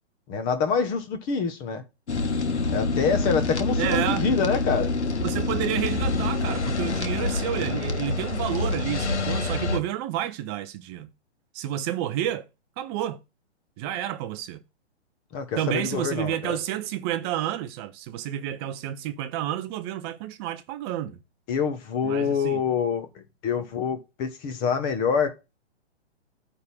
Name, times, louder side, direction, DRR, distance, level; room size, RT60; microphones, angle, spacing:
voice 1, 0.3-1.8 2.7-4.9 15.3-16.6 21.5-25.3, left 6 dB, 25° left, 1.3 m, -26 dB
sound 1, 2.1-9.8, left 3 dB, 90° left, 1.6 m, -26 dB
voice 2, 3.8-4.4 5.2-11.1 11.5-12.5 12.8-13.2 13.8-14.6 15.6-21.2 22.0-22.6, right 12 dB, 25° right, 0.6 m, -30 dB
9.5 x 3.7 x 6.2 m
hypercardioid pair, 135°, 33 cm